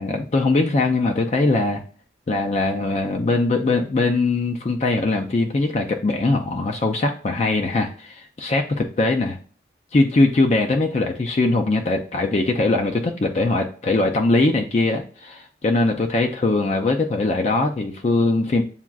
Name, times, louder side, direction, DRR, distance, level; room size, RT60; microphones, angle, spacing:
voice 1, 0.0-1.8 2.3-9.4 9.9-18.6, left 2 dB, 35° left, 3 dB, 0.4 m, -21 dB
7.1 x 2.4 x 2.3 m, 0.42 s
head